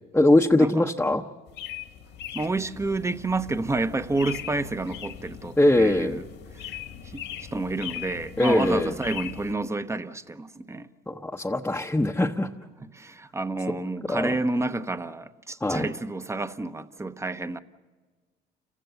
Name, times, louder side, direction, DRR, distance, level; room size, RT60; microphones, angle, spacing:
voice 1, 0.1-1.2 5.6-6.2 8.4-8.9 11.1-12.5 14.1-14.3 15.6-15.9, left 1 dB, 10° left, 0.9 m, -21 dB
sound 1, 1.5-9.5, left 10 dB, 70° left, 1.9 m, -40 dB
voice 2, 2.3-6.2 6.5-6.7 7.0-10.9 12.8-17.6, right 2 dB, 15° right, 0.9 m, -29 dB
29.5 x 16.0 x 6.9 m
supercardioid pair, 80°, 19 cm